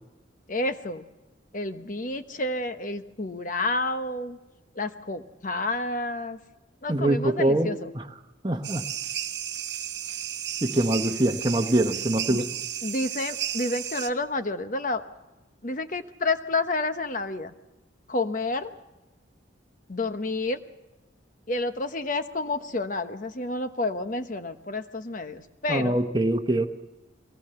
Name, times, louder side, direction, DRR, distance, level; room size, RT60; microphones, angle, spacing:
voice 1, 0.5-1.0 1.5-4.4 4.7-6.4 6.8-7.9 12.3-12.5 12.8-15.0 15.6-17.5 18.1-18.7 19.9-20.6 21.5-26.0, left 2 dB, 40° left, 9 dB, 1.1 m, -29 dB
voice 2, 6.9-8.0 8.4-8.8 10.6-12.4 25.7-26.7, right 1 dB, 20° right, 5 dB, 1.1 m, -24 dB
sound 1, 8.6-14.1, right 10 dB, 55° right, 1.0 m, -33 dB
22.5 x 18.5 x 6.9 m, 1.1 s
head